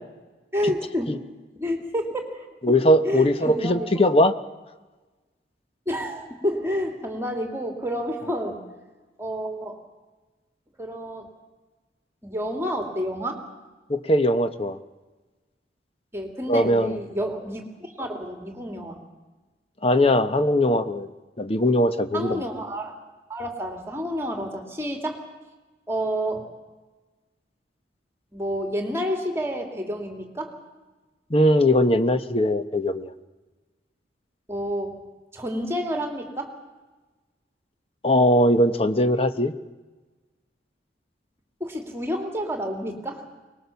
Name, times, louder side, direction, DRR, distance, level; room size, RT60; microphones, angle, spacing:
voice 1, 0.5-1.1 1.6-2.8 3.0-3.9 5.9-8.6 9.2-9.8 10.8-11.3 12.2-13.4 16.1-19.0 22.1-22.9 23.3-25.2 25.9-26.4 28.3-30.5 34.5-35.0 35.3-36.5 41.6-43.4, equal, 15° right, 3 dB, 2.6 m, -29 dB
voice 2, 2.6-4.3 13.9-14.8 16.5-17.0 19.8-21.1 21.4-22.4 31.3-33.1 38.0-39.5, left 1 dB, 35° left, 10 dB, 1.0 m, -20 dB
24.5 x 20.0 x 7.1 m, 1.2 s
head